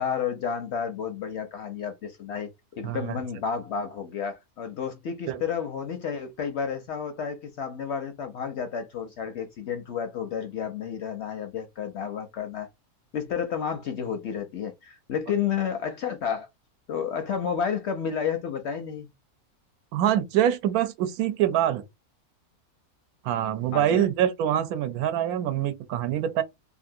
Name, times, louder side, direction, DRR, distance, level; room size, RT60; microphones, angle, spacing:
voice 1, 0.0-2.5 2.8-12.7 13.1-16.5 16.9-19.1 23.7-24.1, left 7 dB, 65° left, 0.7 m, -31 dB
voice 2, 2.8-3.1 5.3-5.4 19.9-21.8 23.2-26.4, right 11 dB, 80° right, 1.0 m, -25 dB
2.8 x 2.5 x 2.6 m
omnidirectional pair, 1.5 m